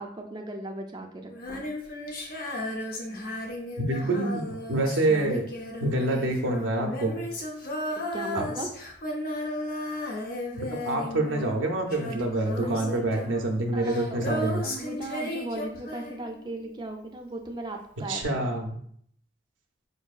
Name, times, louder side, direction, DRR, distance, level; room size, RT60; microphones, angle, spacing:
voice 1, 0.0-1.7 8.1-8.7 12.6-13.3 13.7-18.2, right 2 dB, 20° right, 3 dB, 0.4 m, -37 dB
Female singing, 1.3-16.7 18.2-18.3, left 1 dB, 50° left, 0.6 m, -35 dB
voice 2, 3.8-5.5 5.8-7.2 8.3-8.5 10.6-14.7 18.1-18.7, right 2 dB, 85° right, 2 dB, 0.5 m, -27 dB
4.6 x 2.6 x 2.3 m, 0.64 s
head